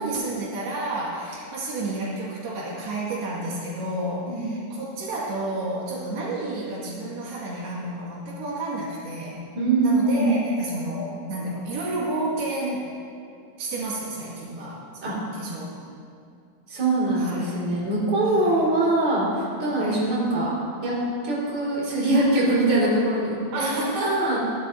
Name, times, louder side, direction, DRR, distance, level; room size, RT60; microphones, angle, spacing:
voice 1, 0.0-9.4 9.8-12.9 13.6-16.0 17.2-17.6 18.3-18.7 19.7-20.0 23.5-24.2, right 2 dB, 85° right, -6 dB, 4.1 m, -31 dB
voice 2, 9.6-10.3 15.0-15.2 16.7-20.5 20.8-21.0 21.2-24.4, right 2 dB, 40° right, -7 dB, 5.2 m, -23 dB
27.0 x 12.5 x 2.8 m, 2.4 s
omnidirectional pair, 4.5 m